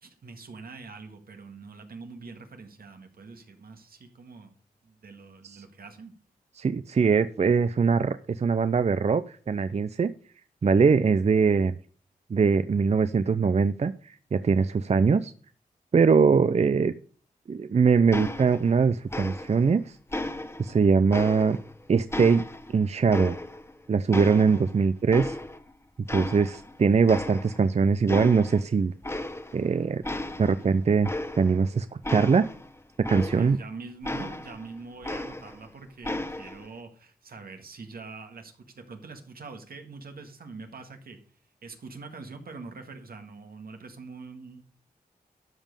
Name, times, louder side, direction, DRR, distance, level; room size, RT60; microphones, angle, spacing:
voice 1, 0.0-4.5 4.8-6.1 33.1-41.2 41.6-44.6, right 4 dB, 75° right, 6 dB, 1.8 m, -44 dB
voice 2, 6.6-10.1 10.6-11.7 12.3-15.3 15.9-16.9 17.5-20.0 20.6-21.6 21.9-22.4 22.7-23.4 23.9-25.4 26.1-28.9 29.5-30.0 30.4-31.1 31.4-31.9 32.1-32.5 33.0-33.6, right 5 dB, 45° right, 13 dB, 0.5 m, -22 dB
sound 1, 18.1-18.8 19.1-19.7 20.1-21.7 22.1-23.8 24.1-25.7 26.1-26.8 27.1-27.7 28.1-28.6 29.0-29.7 30.0-33.7 34.0-35.7 36.0-36.7, left 1 dB, 15° left, 1.2 m, -35 dB
12.5 x 5.3 x 5.4 m, 0.43 s
cardioid pair, 50°, 16 cm